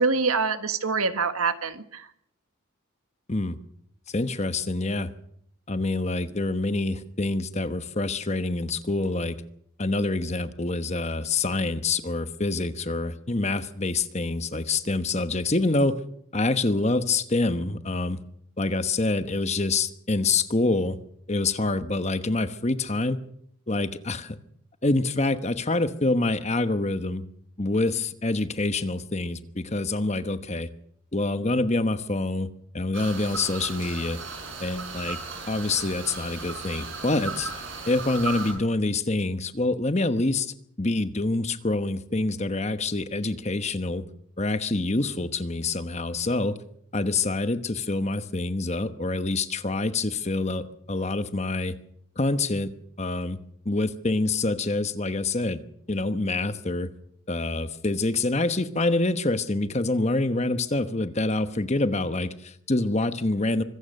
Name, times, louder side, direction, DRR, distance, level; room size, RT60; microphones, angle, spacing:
voice 1, 0.0-2.0, right 4 dB, 85° right, 10 dB, 1.5 m, -25 dB
voice 2, 4.1-5.1 5.7-9.4 9.8-16.0 16.3-18.2 18.6-21.0 21.3-23.2 23.7-24.4 24.8-27.2 27.6-30.7 31.1-32.5 32.7-34.2 34.6-35.2 35.5-37.5 37.9-44.0 44.4-46.6 46.9-51.8 52.2-52.7 53.0-53.4 53.6-55.6 55.9-56.9 57.3-63.6, left 2 dB, 30° left, 11 dB, 1.0 m, -26 dB
sound 1, 32.9-38.5, right 4 dB, 65° right, 7.0 m, -36 dB
25.0 x 16.0 x 6.6 m, 0.70 s
head